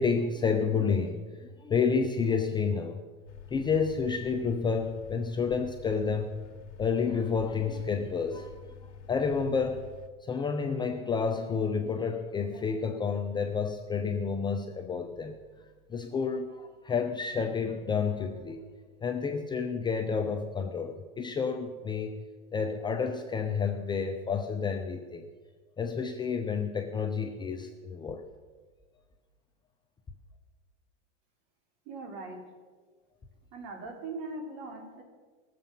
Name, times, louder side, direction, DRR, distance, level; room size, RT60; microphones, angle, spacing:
voice 1, 0.0-3.0 3.5-6.4 6.8-8.6 9.1-9.8 10.2-15.4 15.9-18.6 19.0-22.2 22.5-25.2 25.8-28.2, left 5 dB, 15° left, 4 dB, 0.6 m, -30 dB
sound 1, 3.3-10.1, left 7 dB, 75° left, 1.4 m, -48 dB
voice 2, 31.9-32.5 33.5-35.0, right 3 dB, 50° right, 2 dB, 3.7 m, -40 dB
19.5 x 7.6 x 5.5 m, 1.4 s
hypercardioid pair, 135°, 36 cm